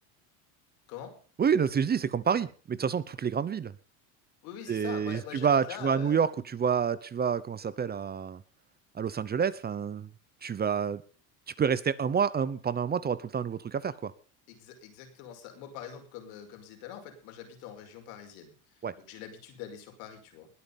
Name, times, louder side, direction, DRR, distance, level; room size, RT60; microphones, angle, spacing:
voice 1, 1.4-3.7 4.7-8.4 8.9-10.1 10.4-11.0 11.6-14.1 18.8-18.9, right 7 dB, 25° right, 17 dB, 0.8 m, -28 dB
voice 2, 4.4-6.2 14.5-20.5, left 9 dB, 80° left, 4 dB, 5.4 m, -44 dB
20.5 x 8.9 x 5.4 m, 0.40 s
supercardioid pair, 125°, 41 cm